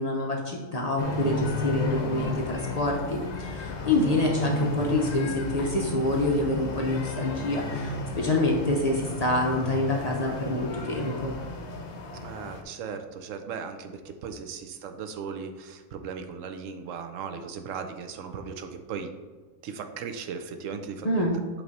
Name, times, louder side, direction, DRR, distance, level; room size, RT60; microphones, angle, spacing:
voice 1, 0.0-11.3 21.0-21.4, left 2 dB, 40° left, -1 dB, 0.7 m, -27 dB
sound 1, 1.0-12.6, left 2 dB, 65° left, 1.0 m, -33 dB
voice 2, 4.1-4.8 12.1-19.1 19.6-21.3, right 6 dB, 80° right, 7 dB, 1.0 m, -37 dB
7.8 x 3.3 x 4.0 m, 1.4 s
omnidirectional pair, 1.3 m